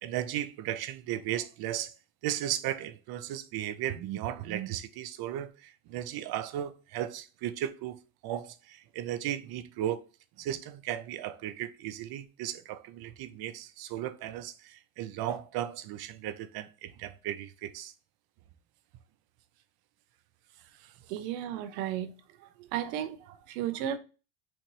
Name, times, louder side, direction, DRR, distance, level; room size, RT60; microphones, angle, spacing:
voice 1, 0.0-1.9 2.2-10.0 10.4-17.9, right 12 dB, 50° right, 0.6 m, -36 dB
voice 2, 21.1-22.1 22.4-24.0, right 10 dB, 85° right, 0.8 m, -34 dB
4.4 x 2.6 x 4.5 m
supercardioid pair, 110°, 50 cm